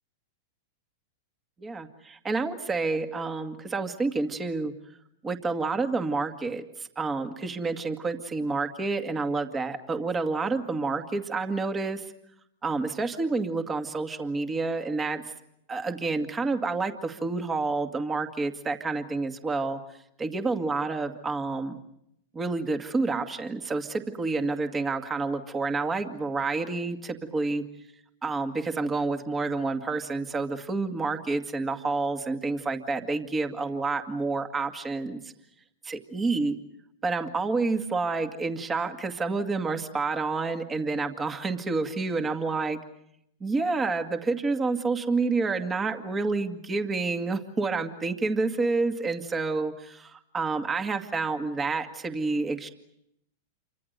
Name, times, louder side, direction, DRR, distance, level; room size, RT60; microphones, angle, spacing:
voice 1, 1.6-4.7 5.2-12.0 12.6-15.2 15.7-19.8 20.2-21.8 22.3-27.6 28.2-35.3 35.8-36.6 37.0-42.8 43.4-52.7, right 3 dB, 20° right, 7 dB, 2.1 m, -29 dB
29.0 x 25.0 x 6.8 m, 0.77 s
hypercardioid pair, 115°, 0 cm